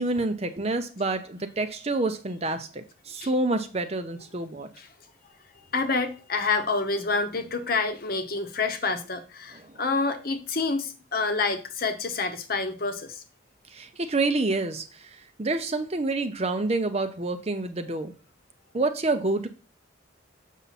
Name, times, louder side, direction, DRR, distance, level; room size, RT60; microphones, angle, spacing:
voice 1, 0.0-4.7 9.6-9.8 13.7-18.1 18.7-19.5, right 2 dB, 30° right, 0.6 m, -28 dB
voice 2, 5.7-13.2, left 4 dB, 50° left, 1.0 m, -28 dB
7.2 x 5.5 x 4.1 m
head